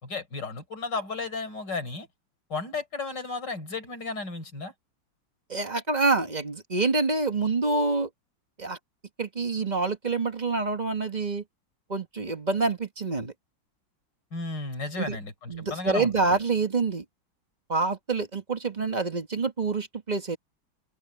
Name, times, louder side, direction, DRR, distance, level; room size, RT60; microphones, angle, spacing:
voice 1, 0.0-2.1 2.5-4.7 14.3-16.1, left 3 dB, 60° left, 5.1 m, -34 dB
voice 2, 5.5-8.1 8.6-8.8 9.2-11.4 11.9-13.3 15.0-15.2 15.5-17.0 17.7-20.4, right 3 dB, 25° right, 1.5 m, -27 dB
open air
omnidirectional pair, 2.2 m